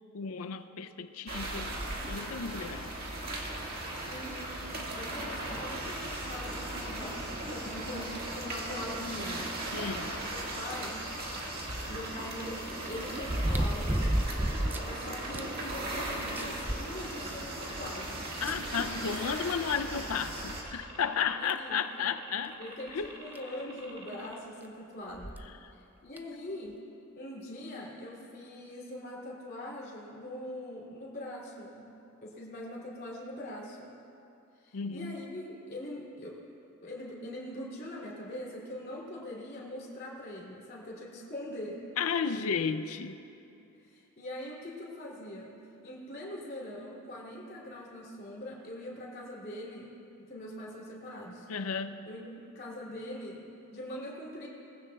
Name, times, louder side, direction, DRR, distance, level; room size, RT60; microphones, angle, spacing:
voice 1, 0.1-1.7 2.1-2.9 9.7-10.2 18.4-22.5 22.9-23.1 25.6-25.7 34.7-35.2 42.0-43.2 51.5-52.1, left 6 dB, 75° left, 11 dB, 0.5 m, -33 dB
sound 1, 1.3-20.6, right 1 dB, 45° right, 1.8 m, -38 dB
voice 2, 4.1-4.7 5.0-9.5 10.5-11.1 11.8-14.1 14.8-18.4 21.4-21.8 22.6-25.4 25.7-26.8 27.1-31.9 32.2-34.0 34.6-36.4 36.8-41.8 43.6-45.6 45.8-51.5 52.1-54.5, left 1 dB, 45° left, -4 dB, 2.9 m, -42 dB
sound 2, 4.9-24.4, right 2 dB, 30° right, 1.6 m, -49 dB
sound 3, 11.3-11.4 13.2-14.9 15.3-15.4 15.9-16.0 16.4-17.5 18.5-18.6 20.0-20.1 20.7-20.8 21.5-21.7 23.0-23.1 23.3-23.4 25.1-25.5 26.2-26.3, right 1 dB, 10° right, 0.3 m, -30 dB
21.0 x 15.0 x 2.3 m, 2.8 s
head